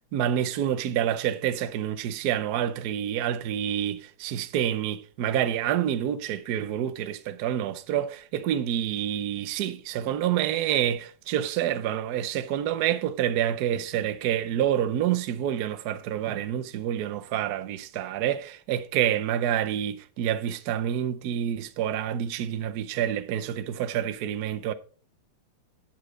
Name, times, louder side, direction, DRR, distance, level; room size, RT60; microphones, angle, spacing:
voice 1, 0.1-24.7, right 10 dB, 70° right, 0.9 m, -28 dB
12.0 x 4.5 x 4.9 m
omnidirectional pair, 2.4 m